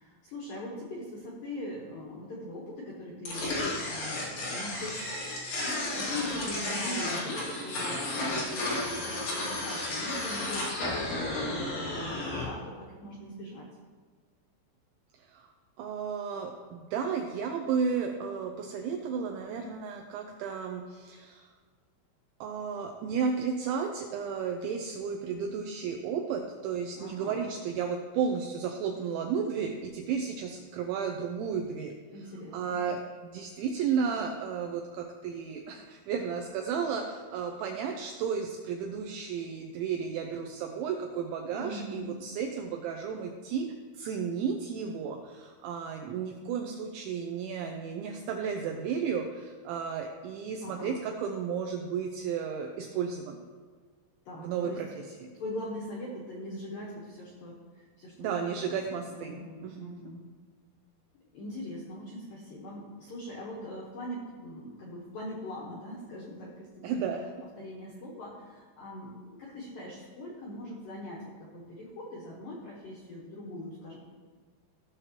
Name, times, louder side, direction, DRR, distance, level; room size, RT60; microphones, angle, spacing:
voice 1, 0.0-13.7 26.9-27.4 32.1-32.8 41.5-42.3 50.6-51.0 54.3-54.8 55.1-58.8 59.1-60.2 61.1-67.0 67.6-74.0, left 1 dB, 80° left, -5 dB, 2.0 m, -41 dB
sound 1, 3.3-12.4, left 2 dB, 50° left, 3.5 m, -33 dB
voice 2, 15.2-15.5 15.8-21.5 22.4-31.9 32.5-53.4 54.4-54.9 55.2-55.3 58.2-59.4 59.6-59.9 66.8-67.2, right 6 dB, 90° right, 3 dB, 2.6 m, -33 dB
15.5 x 6.5 x 3.0 m, 1.5 s
omnidirectional pair, 6.0 m